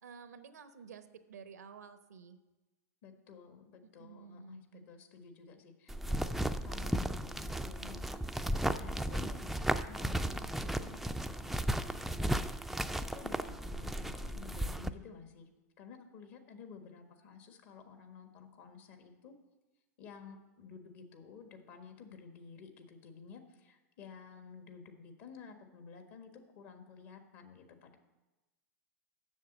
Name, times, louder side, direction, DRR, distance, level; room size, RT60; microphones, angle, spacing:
voice 1, 0.0-2.4 4.0-4.9, right 6 dB, 85° right, 11 dB, 0.8 m, -52 dB
voice 2, 3.0-8.2 8.5-15.5 15.8-19.3 20.0-28.0, left 6 dB, 55° left, 6 dB, 1.5 m, -53 dB
sound 1, 5.9-14.9, right 1 dB, ahead, 0.4 m, -35 dB
7.3 x 6.7 x 8.0 m, 1.1 s
hypercardioid pair, 105°, 9 cm